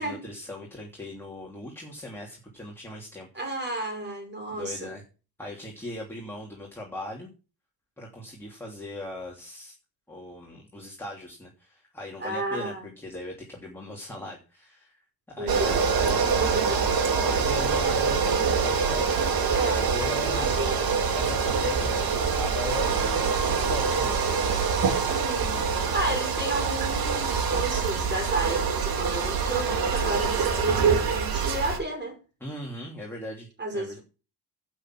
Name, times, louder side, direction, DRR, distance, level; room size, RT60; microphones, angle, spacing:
voice 1, 0.0-3.3 4.5-5.0 5.4-7.3 8.0-9.8 10.1-14.9 15.3-16.5 16.9-19.0 19.7-20.6 21.1-24.4 32.4-34.0, left 1 dB, 5° left, 3.1 m, -39 dB
voice 2, 3.3-5.0 12.2-12.8 15.4-15.9 16.2-16.8 19.5-20.9 25.1-32.2 33.6-34.0, right 2 dB, 25° right, 5.7 m, -32 dB
sound 1, 15.5-31.8, right 5 dB, 60° right, 2.4 m, -25 dB
12.0 x 8.3 x 6.2 m
cardioid pair, 140°, 40 cm